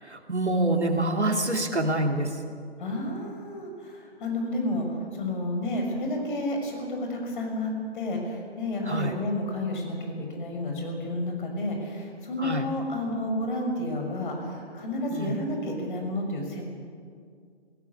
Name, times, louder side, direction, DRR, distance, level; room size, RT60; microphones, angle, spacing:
voice 1, 0.0-2.4 8.8-9.1 12.4-12.7 15.1-15.3, right 1 dB, 90° right, 4 dB, 2.7 m, -26 dB
voice 2, 2.8-4.8 5.1-16.6, left 1 dB, 50° left, 2 dB, 6.2 m, -31 dB
18.5 x 17.5 x 9.5 m, 2.2 s
figure-of-eight pair, 135°, 33 cm